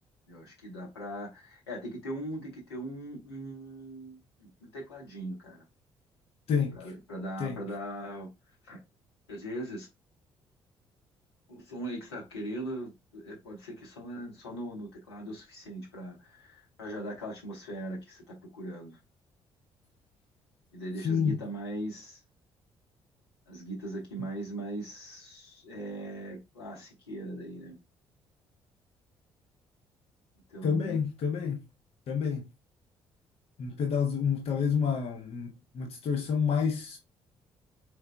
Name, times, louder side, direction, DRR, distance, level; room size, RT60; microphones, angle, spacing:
voice 1, 0.3-5.6 6.7-8.3 8.7-8.8 9.3-9.9 11.5-19.0 20.7-22.2 23.5-27.8 30.5-31.0, right 1 dB, 80° left, 1.2 m, -40 dB
voice 2, 6.5-6.8 7.4-7.6 21.0-21.4 30.6-31.6 32.1-32.5 33.6-37.0, left 6 dB, 50° left, 0.8 m, -29 dB
4.6 x 4.5 x 2.2 m
figure-of-eight pair, 45°, 13 cm